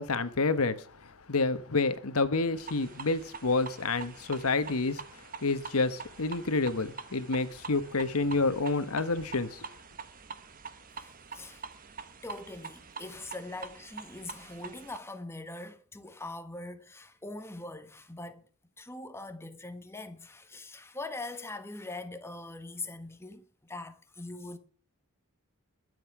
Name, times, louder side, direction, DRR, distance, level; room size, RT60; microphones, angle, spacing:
voice 1, 0.0-5.0 5.4-9.7, left 3 dB, 80° left, 1.2 m, -29 dB
sound 1, 2.6-15.0, right 5 dB, 40° right, 1.2 m, -45 dB
voice 2, 10.9-11.6 12.2-18.4 18.8-24.6, left 2 dB, 10° left, 1.2 m, -42 dB
21.5 x 7.8 x 4.8 m
head